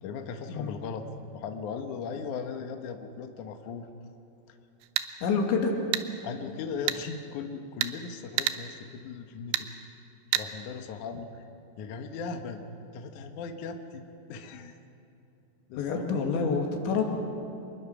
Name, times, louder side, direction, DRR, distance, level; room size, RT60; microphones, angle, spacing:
voice 1, 0.0-1.1 1.3-3.9 6.2-9.7 10.3-11.4 11.8-12.6 12.9-14.0 14.3-14.8 15.7-16.0, left 5 dB, 70° left, 5 dB, 1.9 m, -38 dB
sound 1, 4.8-5.1 5.9-6.1 6.9-7.0 7.8-7.9 8.4-8.6 9.5-9.7 10.3-10.5, right 13 dB, 85° right, 3.1 m, -28 dB
voice 2, 5.2-5.7 15.8-17.1, left 5 dB, 85° left, 1 dB, 4.6 m, -27 dB
26.5 x 21.5 x 6.0 m, 2.9 s
omnidirectional pair, 5.1 m